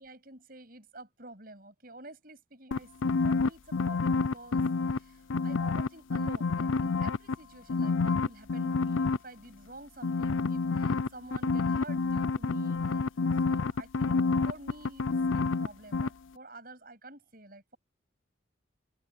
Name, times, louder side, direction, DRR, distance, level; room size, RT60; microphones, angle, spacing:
voice 1, 0.0-4.6 5.0-13.1 13.4-14.2 14.4-15.0 15.3-17.8, right 2 dB, 50° right, 7.7 m, -49 dB
sound 1, 2.7-5.0 5.3-7.3 7.7-9.2 10.0-15.7 15.9-16.1, left 4 dB, 85° left, 0.5 m, -28 dB
open air
head